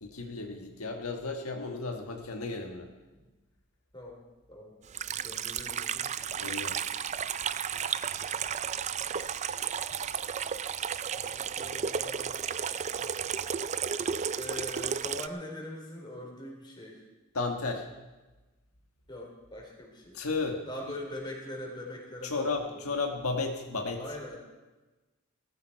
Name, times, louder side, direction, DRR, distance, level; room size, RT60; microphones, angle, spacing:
voice 1, 0.0-2.9 6.4-6.8 17.3-17.9 20.1-20.6 22.2-24.0, left 3 dB, 80° left, 3 dB, 1.5 m, -33 dB
Water tap faucet / Sink (filling or washing), 4.9-15.3, right 7 dB, 30° right, 0.4 m, -33 dB
voice 2, 5.2-6.4 8.2-8.8 11.1-12.7 13.0-13.1 14.3-17.0 19.1-20.2 20.7-22.8 24.0-24.4, left 1 dB, 20° left, 0 dB, 3.8 m, -43 dB
17.5 x 14.0 x 4.6 m, 1.2 s
head